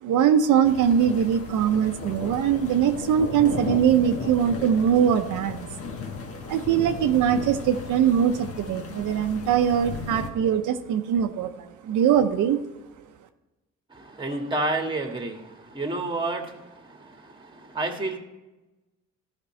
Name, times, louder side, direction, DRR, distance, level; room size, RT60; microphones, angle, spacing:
voice 1, 0.0-5.7 6.5-12.6, right 8 dB, 80° right, 6 dB, 0.7 m, -22 dB
sound 1, 0.6-10.3, left 4 dB, 50° left, 1.3 m, -35 dB
voice 2, 13.9-18.2, right 2 dB, 15° right, 3 dB, 1.6 m, -30 dB
13.0 x 5.3 x 4.4 m, 1.1 s
cardioid pair, 90°, 30 cm